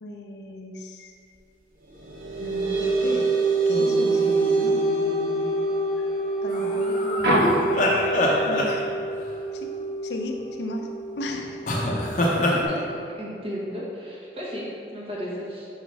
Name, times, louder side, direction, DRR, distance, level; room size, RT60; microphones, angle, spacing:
voice 1, 0.0-1.1 2.4-3.3 3.7-4.8 6.4-7.7 8.4-8.8 9.5-9.7 10.0-10.9 11.2-11.7, left 1 dB, 80° left, 3 dB, 0.6 m, -34 dB
sound 1, 1.9-12.9, right 3 dB, 50° right, 0.7 m, -26 dB
sound 2, 3.7-6.0 7.2-8.4, equal, 70° right, 1.0 m, -27 dB
sound 3, 6.5-9.2 11.7-12.6, left 1 dB, 45° left, 0.7 m, -25 dB
voice 2, 12.3-12.8 13.2-15.7, equal, 30° right, -6 dB, 1.2 m, -34 dB
5.2 x 4.1 x 4.6 m, 2.5 s
head